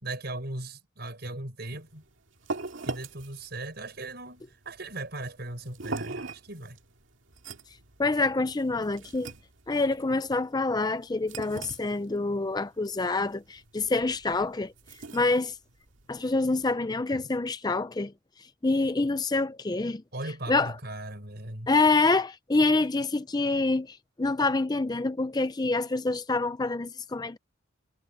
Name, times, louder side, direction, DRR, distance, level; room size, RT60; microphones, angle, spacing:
voice 1, 0.0-2.0 2.8-6.8 17.1-17.3 20.1-21.7, right 2 dB, 50° right, 5.7 m, -38 dB
sound 1, 1.7-16.7, right 3 dB, 70° right, 2.2 m, -42 dB
voice 2, 8.0-9.3 9.7-14.7 15.1-15.5 16.1-18.1 18.6-20.0 20.5-20.7 21.7-27.4, left 3 dB, 20° left, 0.5 m, -26 dB
head